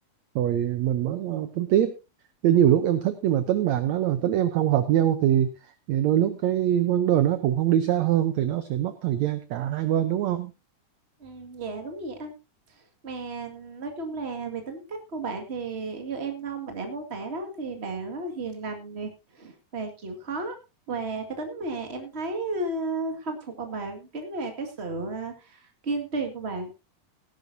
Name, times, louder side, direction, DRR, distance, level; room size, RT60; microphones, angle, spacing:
voice 1, 0.3-2.0 2.4-10.5, right 11 dB, 80° right, 11 dB, 1.6 m, -23 dB
voice 2, 11.2-12.3 13.0-20.5 20.9-26.7, right 3 dB, 30° right, 5 dB, 1.2 m, -33 dB
18.0 x 11.0 x 2.7 m, 0.26 s
omnidirectional pair, 4.2 m